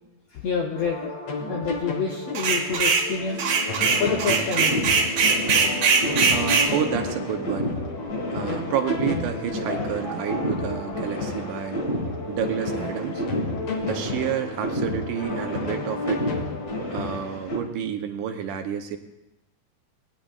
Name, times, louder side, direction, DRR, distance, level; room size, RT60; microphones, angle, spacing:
voice 1, 0.3-1.1 1.4-4.9, left 5 dB, 75° left, 1 dB, 1.5 m, -28 dB
sound 1, 0.7-16.8, left 2 dB, 55° left, 2.4 m, -33 dB
sound 2, 2.3-3.1 3.4-6.7, right 5 dB, 55° right, 1.9 m, -21 dB
sound 3, 3.7-17.6, left 1 dB, 40° left, 1.5 m, -31 dB
voice 2, 6.3-7.8 8.3-11.8 12.3-13.3 13.8-16.3 16.9-19.0, right 9 dB, 75° right, 5 dB, 2.2 m, -29 dB
20.0 x 10.0 x 2.4 m, 0.92 s
omnidirectional pair, 3.9 m